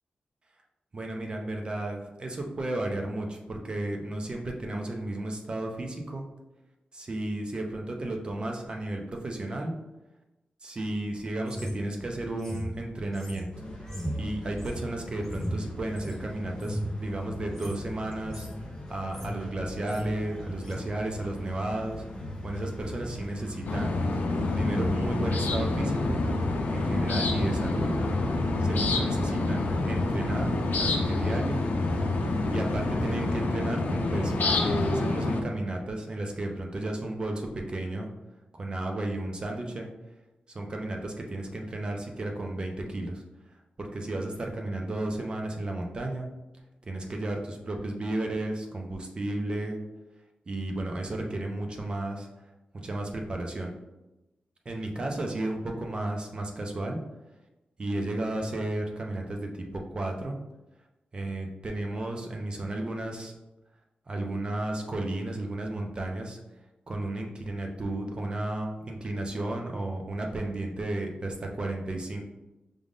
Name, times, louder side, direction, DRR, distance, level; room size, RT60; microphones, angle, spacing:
voice 1, 0.9-6.3 6.9-9.7 10.6-13.5 14.1-18.5 18.9-22.0 22.4-23.9 24.5-26.2 26.7-27.9 28.6-31.6 32.5-38.1 38.5-39.9 40.5-43.2 43.8-46.3 46.8-49.8 50.5-52.3 52.8-53.7 54.7-57.0 57.8-60.4 61.1-63.3 64.1-66.4 66.9-72.2, right 2 dB, 30° right, 2 dB, 0.6 m, -33 dB
sound 1, 11.4-16.2 16.5-16.9 17.4-17.8 18.1-18.6 18.9-19.4 19.7-20.1 20.6-20.8, equal, 10° left, 0.9 m, -36 dB
sound 2, 13.5-33.4, equal, 35° left, 1.1 m, -40 dB
sound 3, 23.7-35.4, left 2 dB, 75° left, 0.5 m, -27 dB
5.0 x 3.5 x 2.5 m, 0.99 s
wide cardioid pair, 170°, 3 cm